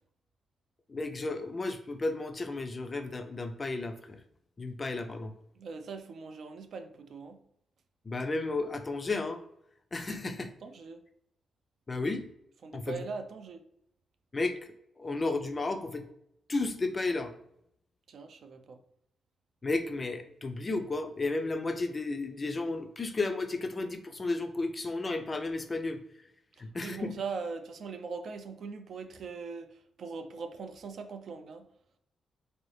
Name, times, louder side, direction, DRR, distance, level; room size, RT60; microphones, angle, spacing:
voice 1, 0.9-4.2 4.6-5.3 8.1-9.4 9.9-10.5 11.9-12.3 12.7-13.0 14.3-14.6 15.0-16.1 16.5-17.3 19.6-26.0 26.6-27.2, left 3 dB, 25° left, 0.4 m, -33 dB
voice 2, 5.6-7.4 10.6-11.0 12.6-13.6 18.1-18.8 26.8-29.7 30.0-31.7, right 4 dB, 55° right, 0.4 m, -40 dB
4.0 x 2.6 x 3.2 m
wide cardioid pair, 145°, 0 cm